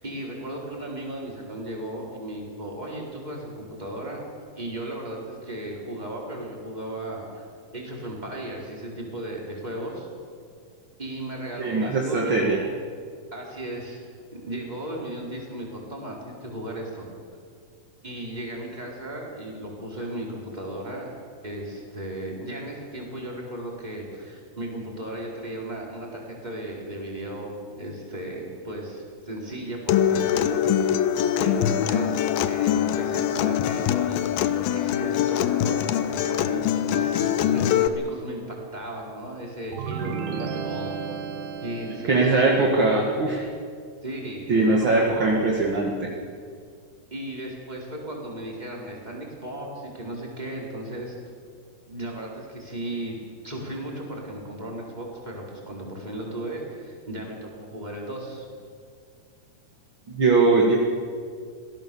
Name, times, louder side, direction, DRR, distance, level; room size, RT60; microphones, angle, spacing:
voice 1, 0.0-4.2 4.6-7.4 7.7-10.1 11.0-12.6 13.3-14.0 14.3-17.1 18.0-21.1 21.4-30.9 31.4-40.9 41.6-43.1 44.0-45.3 47.1-51.2 51.9-53.2 53.4-58.5, right 1 dB, 10° right, -2 dB, 4.2 m, -35 dB
voice 2, 11.6-12.6 42.1-43.4 44.5-45.9 60.1-60.8, right 3 dB, 40° right, -1 dB, 1.8 m, -20 dB
Acoustic guitar, 29.9-37.9, left 10 dB, 75° left, 2.4 m, -23 dB
sound 1, 39.7-42.5, right 6 dB, 75° right, 3.0 m, -33 dB
25.5 x 17.0 x 7.1 m, 2.1 s
omnidirectional pair, 4.7 m